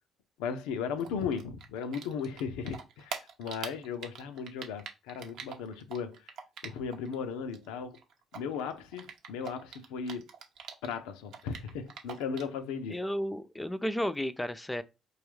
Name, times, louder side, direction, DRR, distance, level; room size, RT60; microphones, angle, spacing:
voice 1, 0.4-6.3 6.6-8.0 8.3-10.3 10.8-13.0, left 6 dB, 85° left, 0.5 m, -36 dB
Typing, 1.0-7.1 7.4-11.0 11.3-12.6, right 7 dB, 70° right, 0.8 m, -43 dB
voice 2, 12.9-14.8, equal, 10° left, 0.5 m, -33 dB
4.8 x 2.3 x 3.1 m
supercardioid pair, 60°, 0 cm